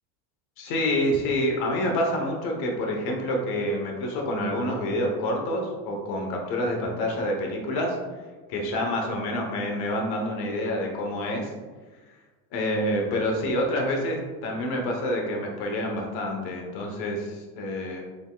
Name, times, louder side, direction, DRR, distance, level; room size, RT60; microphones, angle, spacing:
voice 1, 0.6-8.0 8.5-11.5 12.5-18.0, left 1 dB, 60° left, 1 dB, 1.0 m, -27 dB
5.1 x 3.5 x 2.3 m, 1.3 s
supercardioid pair, 115°, 44 cm